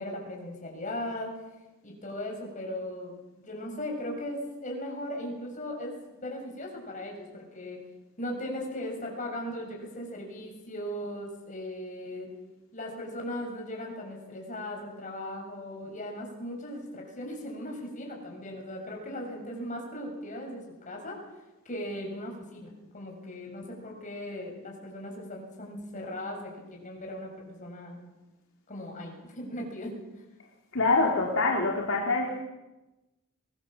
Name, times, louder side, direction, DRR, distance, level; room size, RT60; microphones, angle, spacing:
voice 1, 0.0-1.4 1.8-7.8 8.2-12.3 12.7-21.2 21.6-28.0 28.7-29.9 32.3-32.4, left 1 dB, 35° left, 1 dB, 6.7 m, -38 dB
voice 2, 30.7-32.4, left 3 dB, 65° left, 0 dB, 3.1 m, -25 dB
23.0 x 19.5 x 7.5 m, 1.1 s
head